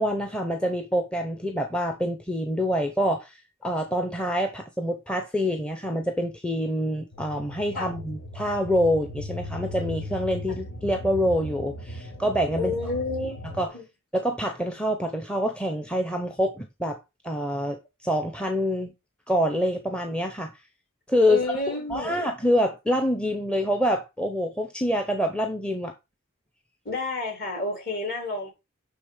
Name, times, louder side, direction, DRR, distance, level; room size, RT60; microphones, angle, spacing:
voice 1, 0.0-3.3 3.6-12.7 13.6-13.7 14.1-17.0 17.2-18.9 19.3-20.5 21.1-21.6 21.9-25.9, equal, 5° left, 0.8 m, -26 dB
sound 1, 7.1-13.7, left 1 dB, 60° left, 1.8 m, -37 dB
voice 2, 12.5-13.4 13.7-13.8 21.3-22.1 26.8-28.5, left 2 dB, 45° left, 4.1 m, -30 dB
9.2 x 3.9 x 4.9 m
head